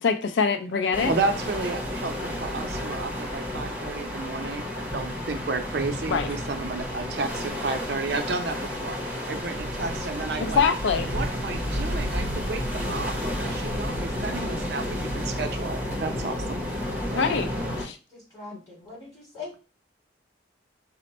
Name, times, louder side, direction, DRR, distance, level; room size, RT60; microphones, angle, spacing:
voice 1, 0.0-1.1 6.1-6.3 10.4-11.1 17.1-17.5 17.8-18.0, left 5 dB, 80° left, 0.4 m, -24 dB
sound 1, 0.9-17.8, equal, 10° right, 0.8 m, -31 dB
voice 2, 1.0-10.6 11.1-15.0 15.2-16.6 17.1-17.2, right 3 dB, 60° right, 0.5 m, -32 dB
sound 2, 5.7-7.8, equal, 45° left, 1.8 m, -42 dB
voice 3, 18.1-19.5, left 4 dB, 20° left, 2.5 m, -41 dB
5.0 x 2.1 x 4.2 m
head